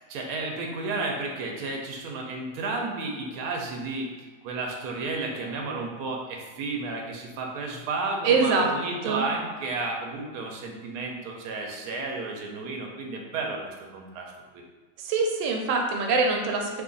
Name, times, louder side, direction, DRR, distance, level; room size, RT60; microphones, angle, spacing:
voice 1, 0.1-4.1 4.4-14.6, right 3 dB, 70° right, 1 dB, 1.0 m, -32 dB
voice 2, 8.2-8.7 9.1-9.2 15.0-16.7, right 4 dB, 90° right, 2 dB, 1.3 m, -23 dB
2.8 x 2.5 x 3.8 m, 1.4 s
omnidirectional pair, 1.9 m